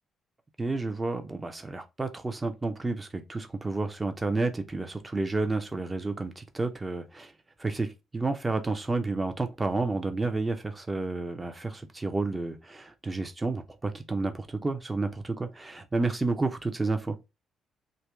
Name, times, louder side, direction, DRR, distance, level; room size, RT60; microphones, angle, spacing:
voice 1, 0.6-7.3 7.6-17.1, right 3 dB, 20° right, 0.8 m, -30 dB
2.8 x 2.8 x 3.5 m
figure-of-eight pair, 40°, 0 cm